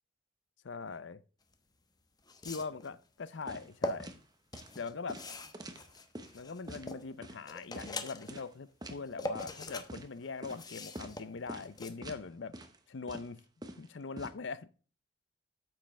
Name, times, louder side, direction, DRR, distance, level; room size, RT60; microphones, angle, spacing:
voice 1, 0.6-1.2 2.4-4.1 4.8-5.2 6.3-12.6 12.9-13.4 13.8-14.7, left 4 dB, 85° left, 0.6 m, -42 dB
sound 1, 1.5-1.6 2.2-2.9 3.5-3.9 4.5-7.1 7.5-8.4 8.8-9.9 10.2-11.9, left 1 dB, 20° left, 1.0 m, -41 dB
sound 2, 3.5-3.7 4.0-4.2 4.5-4.7 5.1-6.3 6.7-6.9 7.2-7.4 7.8-7.9 8.3-8.5 8.8-9.0 9.3-9.6 9.9-10.1 10.4-10.6 11.0-11.2 11.5-11.7 12.0-12.2 12.5-12.8 13.1-14.3, right 1 dB, 20° right, 1.0 m, -45 dB
9.0 x 7.6 x 3.3 m
head